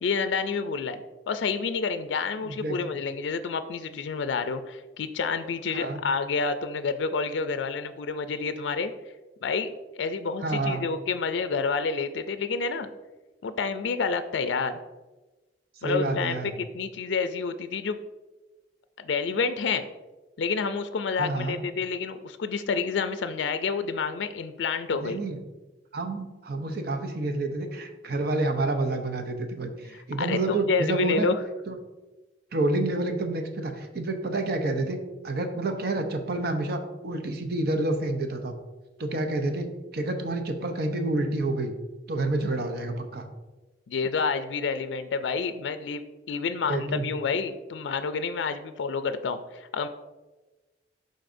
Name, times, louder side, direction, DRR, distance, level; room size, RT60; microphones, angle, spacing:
voice 1, 0.0-8.9 9.4-12.9 13.4-14.8 15.8-18.0 19.0-19.8 20.4-25.2 29.9-31.4 43.9-49.9, left 5 dB, 70° left, 10 dB, 0.4 m, -29 dB
voice 2, 2.4-2.8 5.7-6.0 10.4-10.8 15.8-16.5 21.2-21.6 25.0-25.4 25.9-31.3 31.7-31.8 32.5-35.0 35.2-38.6 39.0-41.7 42.1-43.3 46.7-47.1, right 2 dB, 60° right, 6 dB, 0.7 m, -28 dB
11.5 x 4.0 x 2.6 m, 1.2 s
head